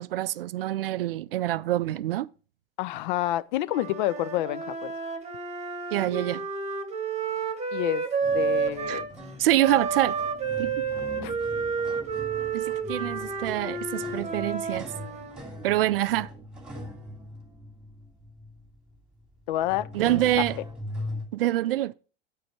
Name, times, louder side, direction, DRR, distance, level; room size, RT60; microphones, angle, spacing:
voice 1, 0.0-2.3 5.9-6.5 8.9-9.0 9.4-10.2 10.6-10.8 12.5-14.9 15.6-16.3 19.9-20.6 21.3-21.9, right 14 dB, 65° right, 0.4 m, -26 dB
voice 2, 2.8-4.9 7.7-8.1 8.3-9.1 11.2-11.4 19.5-20.2, left 14 dB, 50° left, 0.5 m, -29 dB
Wind instrument woodwind instrument, 3.6-9.1 9.6-15.4, right 5 dB, 20° right, 1.3 m, -31 dB
sound 1, 8.2-21.3, left 1 dB, 5° right, 2.5 m, -41 dB
9.6 x 4.9 x 4.5 m
figure-of-eight pair, 75°, 31 cm